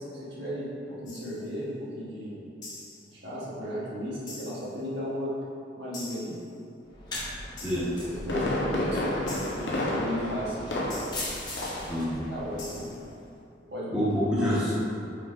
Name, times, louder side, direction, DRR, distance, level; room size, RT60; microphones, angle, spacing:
voice 1, 0.0-2.5 3.1-5.4 5.8-6.3 7.6-10.7 12.1-12.9 13.7-14.0, equal, 75° right, -9 dB, 1.4 m, -35 dB
sound 1, 1.1-1.5 2.6-3.1 4.3-4.8 5.9-6.5 7.6-8.1 9.3-9.8 10.9-11.4 12.6-13.1, left 2 dB, 45° left, 1.2 m, -44 dB
sound 2, 6.9-13.3, left 1 dB, 25° left, 0.8 m, -40 dB
Fireworks, 7.8-11.3 11.6-11.9 12.3-12.4, left 1 dB, 85° left, 0.8 m, -30 dB
voice 2, 11.9-12.2 13.9-14.7, equal, 5° right, -12 dB, 0.9 m, -26 dB
4.5 x 3.4 x 3.3 m, 2.6 s
head